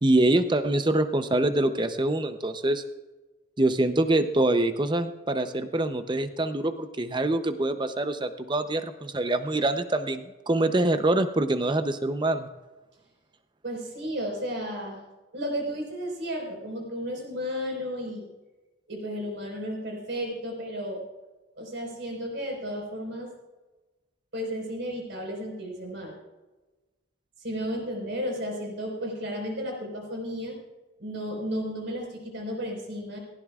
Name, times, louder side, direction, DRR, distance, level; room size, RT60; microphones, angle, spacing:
voice 1, 0.0-2.8 3.6-12.5, right 2 dB, 20° right, 9 dB, 0.6 m, -25 dB
voice 2, 13.6-15.0 15.3-18.3 18.9-21.0 21.6-23.3 24.3-26.2 27.4-30.6 31.0-33.2, equal, 60° right, 0 dB, 4.7 m, -33 dB
18.0 x 16.5 x 2.4 m, 1.2 s
head